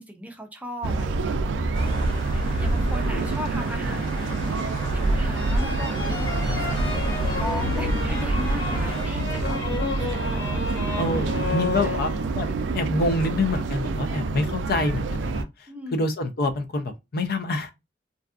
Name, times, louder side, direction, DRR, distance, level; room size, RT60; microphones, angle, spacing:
voice 1, 0.0-1.4 2.3-4.3 4.9-10.7 11.8-12.0 14.1-14.2 15.7-16.0, left 1 dB, 10° right, 0.5 m, -37 dB
sound 1, 0.8-15.4, right 3 dB, 80° right, 0.3 m, -26 dB
sound 2, 1.7-9.0, equal, 25° left, 1.0 m, -37 dB
voice 2, 2.2-3.2 3.6-4.1 5.1-5.2 6.5-6.7 9.3-9.5 10.9-12.5 12.7-17.7, left 2 dB, 55° left, 0.5 m, -28 dB
sound 3, 5.3-12.5, left 4 dB, 80° left, 0.8 m, -33 dB
2.6 x 2.3 x 2.3 m
head